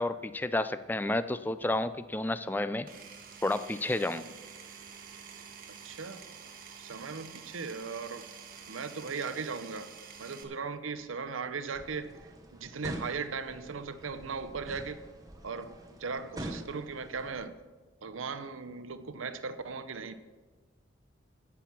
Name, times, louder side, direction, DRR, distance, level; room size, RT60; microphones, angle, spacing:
voice 1, 0.0-2.9 3.4-4.2, left 2 dB, 10° left, 0.3 m, -31 dB
Power tool, 2.9-10.4, right 6 dB, 45° right, 1.3 m, -49 dB
voice 2, 5.8-6.2 6.8-8.2 8.7-9.9 10.2-12.1 12.5-15.0 15.4-15.7 16.0-17.5 18.0-20.2, right 5 dB, 90° right, 0.7 m, -38 dB
sound 1, 11.7-17.5, right 1 dB, 20° right, 1.0 m, -45 dB
15.5 x 5.9 x 6.0 m
head